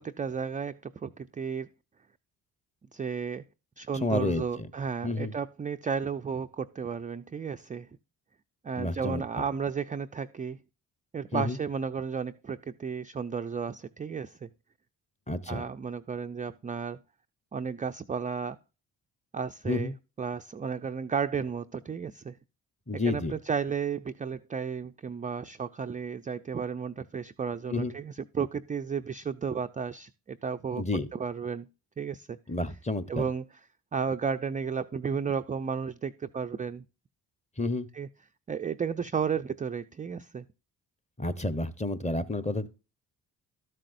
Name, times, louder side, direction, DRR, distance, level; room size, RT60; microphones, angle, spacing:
voice 1, 0.0-1.7 2.9-3.4 3.8-7.9 8.6-10.6 11.1-14.5 15.5-17.0 17.5-18.6 19.3-22.4 22.9-30.8 31.1-31.7 32.0-32.4 33.1-33.4 33.9-36.8 37.9-38.1 38.5-40.5, right 6 dB, 20° right, 0.4 m, -33 dB
voice 2, 4.0-4.7 5.0-5.3 8.8-9.2 11.3-11.6 15.3-15.6 19.7-19.9 22.9-23.4 27.7-27.9 30.8-31.1 32.5-33.3 37.6-37.9 41.2-42.7, left 2 dB, 15° left, 0.9 m, -30 dB
12.5 x 7.5 x 2.6 m
hypercardioid pair, 45°, 47 cm